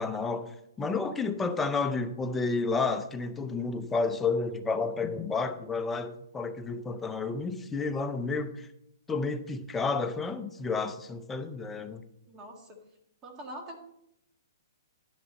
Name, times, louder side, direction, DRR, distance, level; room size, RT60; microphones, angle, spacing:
voice 1, 0.0-8.7 9.1-12.0, left 4 dB, 10° left, 0.5 m, -31 dB
voice 2, 12.3-12.8 13.2-13.8, right 1 dB, 15° right, 1.8 m, -43 dB
12.0 x 10.5 x 4.1 m
hypercardioid pair, 165°, 2 cm